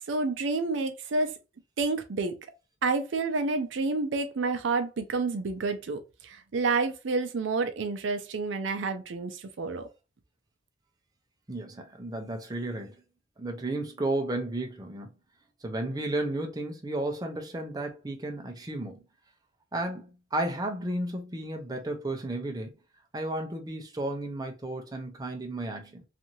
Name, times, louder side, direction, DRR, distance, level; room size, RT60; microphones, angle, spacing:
voice 1, 0.1-1.3 1.8-2.3 2.8-9.9, right 3 dB, 75° right, 0.5 m, -29 dB
voice 2, 11.5-13.0 13.4-15.1 15.6-19.0 19.7-22.7 23.1-26.0, right 1 dB, 20° right, 0.5 m, -33 dB
2.6 x 2.5 x 2.8 m
head